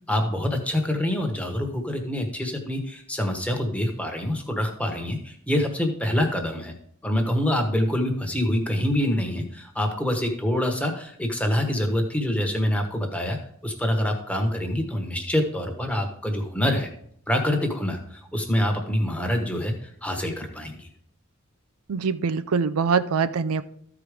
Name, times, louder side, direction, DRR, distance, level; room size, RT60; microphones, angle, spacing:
voice 1, 0.1-6.7 7.0-13.4 13.6-16.9 17.3-20.9, left 1 dB, 5° left, 3 dB, 1.2 m, -26 dB
voice 2, 21.9-23.6, right 5 dB, 80° right, 11 dB, 0.5 m, -23 dB
13.5 x 4.9 x 5.0 m, 0.67 s
head